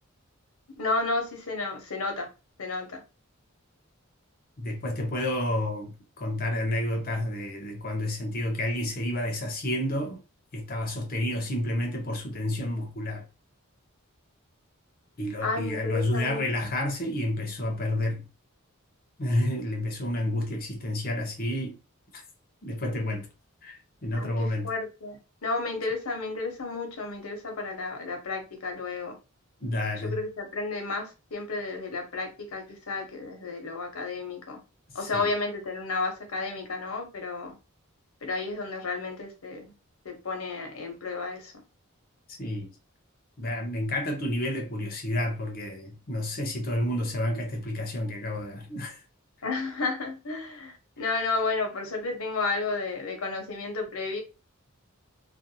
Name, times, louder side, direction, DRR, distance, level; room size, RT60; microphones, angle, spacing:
voice 1, 0.8-2.3 2.6-3.0 15.4-16.7 24.1-29.2 30.0-34.6 34.9-37.6 38.2-39.6 40.0-41.5 49.4-54.2, left 3 dB, 85° left, 0.9 m, -32 dB
voice 2, 4.6-10.2 10.5-13.2 15.2-18.2 19.2-21.8 22.1-22.2 22.6-23.3 23.6-24.7 29.6-30.2 35.0-35.3 42.4-42.7 43.4-49.0, left 1 dB, 45° left, 0.6 m, -30 dB
2.5 x 2.2 x 2.8 m
head